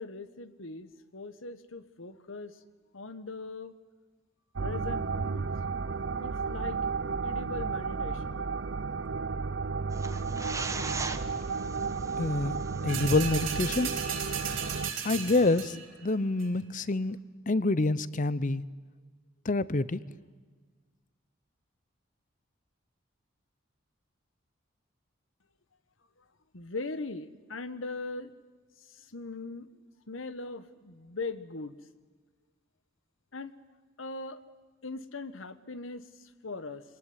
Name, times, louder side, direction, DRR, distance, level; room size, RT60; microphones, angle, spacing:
voice 1, 0.0-2.6 2.9-3.7 4.6-5.5 6.2-6.8 7.2-8.5 26.5-28.3 29.0-29.7 30.1-31.8 33.3-33.5 34.0-34.4 34.8-36.8, left 3 dB, 80° left, 13 dB, 1.4 m, -40 dB
sound 1, 4.6-14.9, right 4 dB, 65° right, 0.7 m, -33 dB
sound 2, 9.9-15.7, right 3 dB, 15° right, 1.1 m, -41 dB
voice 2, 12.2-12.6 12.8-13.9 15.0-15.7 16.0-17.2 17.5-18.6 19.5-20.0, left 2 dB, 40° left, 18 dB, 0.7 m, -27 dB
sound 3, 12.9-15.9 16.4-16.5, right 8 dB, 85° right, 4.8 m, -36 dB
25.0 x 19.0 x 9.8 m, 1.4 s
head